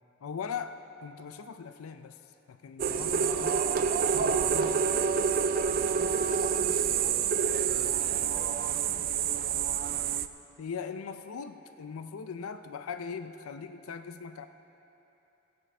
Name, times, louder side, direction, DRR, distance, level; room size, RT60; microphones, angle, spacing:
voice 1, 0.2-2.2 2.5-3.5 4.1-4.9 10.6-14.5, left 6 dB, 85° left, 9 dB, 0.4 m, -40 dB
sound 1, 2.8-10.3, right 7 dB, 45° right, 0.4 m, -27 dB
voice 2, 3.2-3.8 4.5-5.6 6.1-9.1, equal, 5° left, -8 dB, 3.1 m, -48 dB
20.0 x 8.7 x 3.4 m, 3.0 s
head